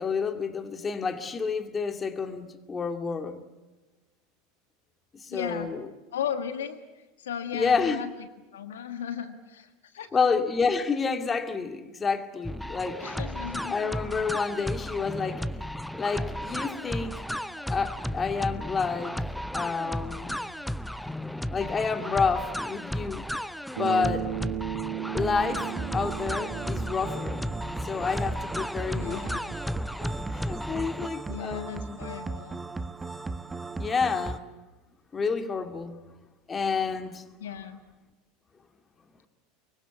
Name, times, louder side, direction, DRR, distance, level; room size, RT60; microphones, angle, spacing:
voice 1, 0.0-3.4 5.1-5.9 7.5-8.0 10.1-13.1 13.7-15.6 16.0-17.3 17.7-19.2 19.5-20.4 21.5-23.3 23.7-24.3 25.1-27.4 27.8-32.0 33.8-34.4 35.1-36.0 36.5-37.2, left 5 dB, 25° left, 7 dB, 2.3 m, -29 dB
voice 2, 5.3-5.7 6.1-6.8 7.2-8.1 8.5-10.1 13.0-13.7 28.9-29.5 31.3-32.6 37.4-37.8, left 8 dB, 75° left, 9 dB, 1.6 m, -36 dB
sound 1, 12.4-31.1, equal, ahead, 0.7 m, -34 dB
Bass guitar, 23.8-28.1, right 12 dB, 65° right, 5.4 m, -36 dB
sound 2, 25.6-34.4, right 3 dB, 15° right, 1.1 m, -37 dB
24.5 x 23.5 x 8.2 m, 1.2 s
figure-of-eight pair, 80°, 0 cm